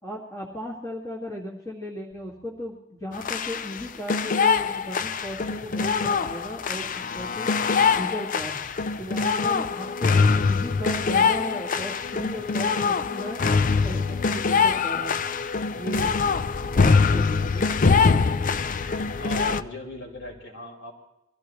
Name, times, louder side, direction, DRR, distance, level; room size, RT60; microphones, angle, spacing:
voice 1, 0.0-7.5 7.9-8.6 9.0-13.4 13.8-15.2 15.7-16.1 16.6-17.7, equal, 15° left, -3 dB, 2.1 m, -36 dB
sound 1, 2.1-8.4 8.7-13.0 13.3-17.6 17.8-20.4, equal, 75° left, 6.5 m, -57 dB
sound 2, 3.1-19.6, left 5 dB, 40° left, 0.5 m, -23 dB
voice 2, 19.2-20.9, left 1 dB, 60° left, 0 dB, 4.9 m, -37 dB
24.5 x 16.0 x 3.2 m, 0.87 s
head